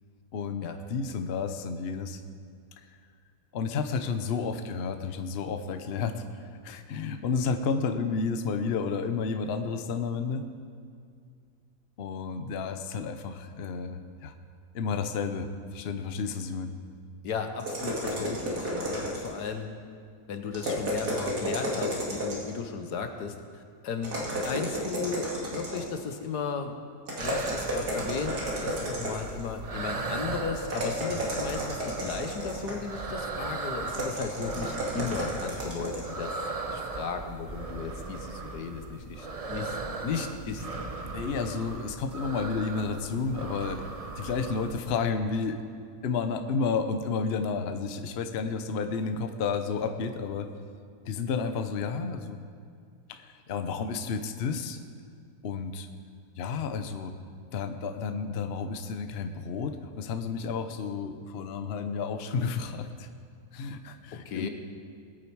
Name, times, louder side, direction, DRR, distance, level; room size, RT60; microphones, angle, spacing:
voice 1, 0.3-2.2 3.5-10.4 12.0-14.3 14.7-16.7 41.0-45.6 46.0-50.5 51.1-52.4 53.1-54.8 55.4-55.9 56.4-57.1 57.5-63.1 63.5-64.5, left 5 dB, 50° left, 7 dB, 0.8 m, -31 dB
voice 2, 17.2-19.7 20.3-26.7 27.2-36.4 36.7-39.8 40.0-40.7 64.2-64.5, left 6 dB, 80° left, 6 dB, 1.6 m, -35 dB
sound 1, 17.6-19.5 20.5-22.6 24.0-26.0 27.1-29.4 30.6-32.9 33.9-36.1, right 1 dB, 70° right, 2.9 m, -32 dB
sound 2, 27.2-44.9, right 3 dB, 45° right, 0.4 m, -38 dB
20.5 x 8.7 x 4.7 m, 2.2 s
omnidirectional pair, 1.7 m